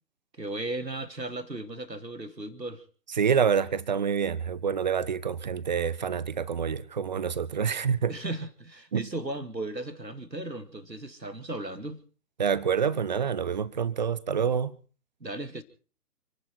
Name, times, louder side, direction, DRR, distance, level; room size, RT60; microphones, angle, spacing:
voice 1, 0.4-2.8 8.1-12.0 15.2-15.6, right 2 dB, 85° right, 2.5 m, -36 dB
voice 2, 3.2-8.1 8.9-9.0 12.4-14.8, right 7 dB, 30° right, 0.7 m, -27 dB
29.5 x 11.0 x 4.4 m
figure-of-eight pair, 135°, 49 cm